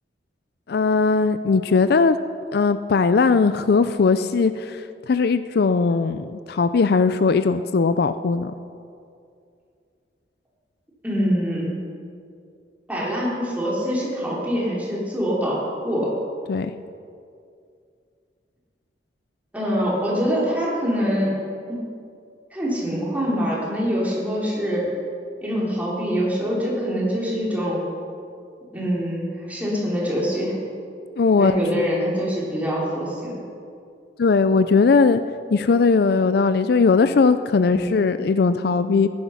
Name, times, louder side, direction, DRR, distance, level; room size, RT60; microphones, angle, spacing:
voice 1, 0.7-2.2 2.5-8.5 16.5-16.7 31.2-31.9 34.2-35.2 35.5-39.1, left 4 dB, 60° left, 12 dB, 0.4 m, -19 dB
voice 2, 11.0-11.8 12.9-16.1 19.5-21.4 21.7-21.8 22.5-24.9 25.4-27.8 28.7-30.6 31.4-33.4 37.6-37.9, equal, 10° right, -6 dB, 3.6 m, -24 dB
15.0 x 11.0 x 5.8 m, 2.4 s
head